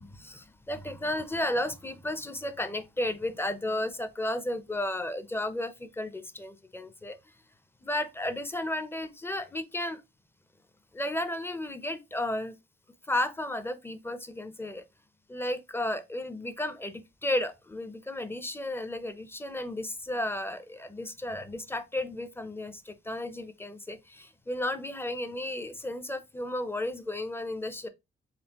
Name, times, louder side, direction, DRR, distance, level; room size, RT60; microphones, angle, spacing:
voice 1, 0.1-7.2 7.8-10.0 10.9-12.6 13.1-14.8 15.3-27.9, left 1 dB, 10° left, 0.5 m, -33 dB
4.3 x 3.2 x 2.9 m
cardioid pair, 90°, 20 cm